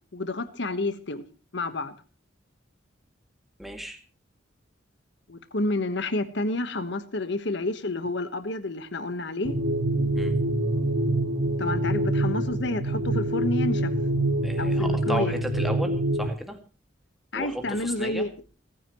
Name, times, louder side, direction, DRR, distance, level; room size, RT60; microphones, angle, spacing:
voice 1, 0.1-1.2 1.5-1.9 5.3-9.6 11.6-13.9 14.6-15.3 17.3-18.3, left 2 dB, 65° left, 11 dB, 1.3 m, -29 dB
voice 2, 3.6-4.0 10.2-10.3 14.4-16.6 17.3-18.3, equal, ahead, 4 dB, 2.1 m, -34 dB
sound 1, 9.4-16.3, right 1 dB, 85° right, 2.0 m, -25 dB
29.0 x 10.0 x 3.1 m, 0.35 s
head